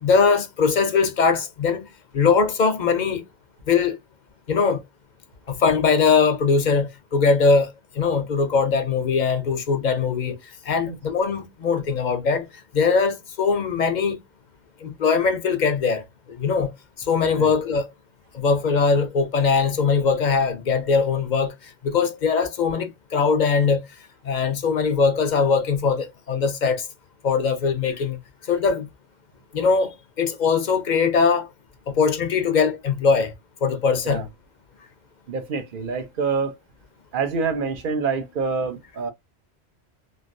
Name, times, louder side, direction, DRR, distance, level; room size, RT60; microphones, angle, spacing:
voice 1, 0.0-1.9 2.1-3.2 3.7-4.0 4.5-4.8 5.5-10.4 10.7-12.4 12.7-14.2 14.8-16.7 17.1-17.9 18.3-21.5 21.8-23.9 24.2-26.8 27.2-28.2 28.5-28.9 29.5-31.5 31.9-33.3 33.6-34.3, left 5 dB, 50° left, 0.7 m, -21 dB
voice 2, 35.3-36.6 37.1-39.1, right 5 dB, 55° right, 0.9 m, -26 dB
3.2 x 2.5 x 2.6 m
omnidirectional pair, 1.1 m